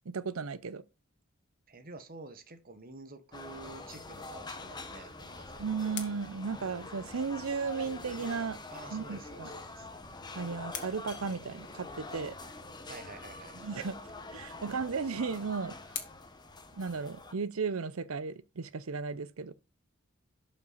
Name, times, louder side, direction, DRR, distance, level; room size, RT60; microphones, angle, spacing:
voice 1, 0.1-0.8 5.6-8.6 8.9-9.5 10.3-12.3 13.6-14.0 14.3-15.8 16.7-19.5, right 5 dB, 85° right, 0.7 m, -35 dB
voice 2, 1.7-5.7 8.7-9.9 12.8-13.6, right 3 dB, 45° right, 1.2 m, -49 dB
sound 1, 3.3-17.3, left 3 dB, 20° left, 1.0 m, -45 dB
sound 2, 5.0-7.5 9.6-12.1 14.3-17.5, left 9 dB, 55° left, 1.8 m, -49 dB
11.5 x 5.4 x 4.1 m
head